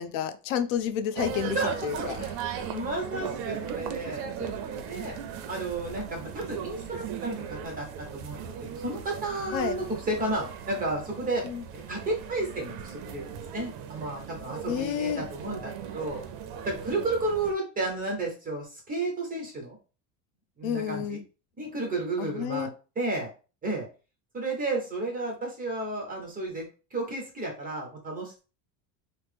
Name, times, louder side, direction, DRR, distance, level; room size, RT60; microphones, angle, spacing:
voice 1, 0.0-1.6 1.8-2.2 9.5-9.8 11.4-11.6 14.7-15.2 20.6-21.2 22.2-22.7, left 9 dB, 85° left, 9 dB, 0.6 m, -30 dB
sound 1, 1.2-17.5, right 8 dB, 60° right, 0.6 m, -38 dB
voice 2, 1.5-5.1 5.5-7.9 8.1-11.4 11.9-16.2 16.7-19.8 20.6-21.2 21.6-22.7 23.0-23.3 23.6-23.9 24.3-26.7 26.9-28.3, right 2 dB, 20° right, 1 dB, 0.9 m, -32 dB
2.9 x 2.0 x 3.3 m, 0.34 s
cardioid pair, 135°, 40 cm